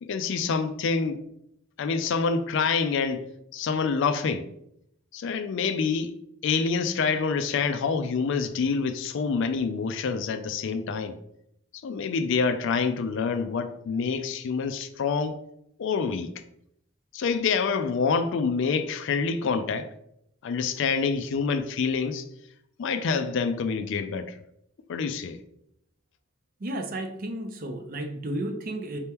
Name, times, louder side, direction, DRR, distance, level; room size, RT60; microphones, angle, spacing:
voice 1, 0.0-1.2 1.8-4.4 5.1-6.1 6.4-11.2 11.8-15.3 15.8-16.3 17.1-19.9 20.4-22.2 22.8-24.3 24.9-25.4, left 5 dB, 65° left, 0.4 m, -27 dB
voice 2, 26.6-29.0, right 1 dB, 45° right, 0.5 m, -33 dB
4.3 x 2.8 x 3.5 m
head